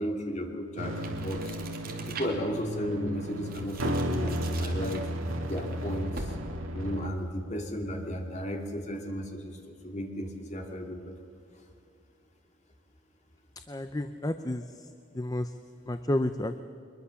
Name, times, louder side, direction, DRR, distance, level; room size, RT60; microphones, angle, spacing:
voice 1, 0.0-1.5 2.1-5.0 5.4-6.3 6.7-11.1, equal, 35° left, 3 dB, 2.5 m, -34 dB
sound 1, 0.8-7.1, equal, 85° right, 1.9 m, -34 dB
sound 2, 1.0-2.6 3.1-6.6, right 3 dB, 45° right, 2.7 m, -43 dB
voice 2, 13.7-14.9 15.1-15.5 15.9-16.6, left 1 dB, 20° left, 9 dB, 0.6 m, -31 dB
22.5 x 21.5 x 7.0 m, 2.7 s
head